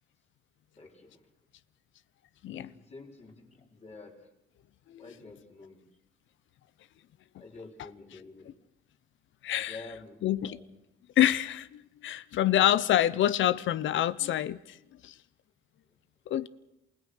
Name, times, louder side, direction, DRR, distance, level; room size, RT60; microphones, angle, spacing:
voice 1, 0.8-1.3 2.4-4.3 5.0-5.8 7.4-8.5 9.7-10.7, left 3 dB, 30° left, 5.0 m, -49 dB
voice 2, 9.4-9.8 10.2-10.6 11.2-14.8 15.0-15.1 16.3-16.5, left 12 dB, 75° left, 0.8 m, -26 dB
28.0 x 17.0 x 6.5 m
cardioid pair, 90°, 20 cm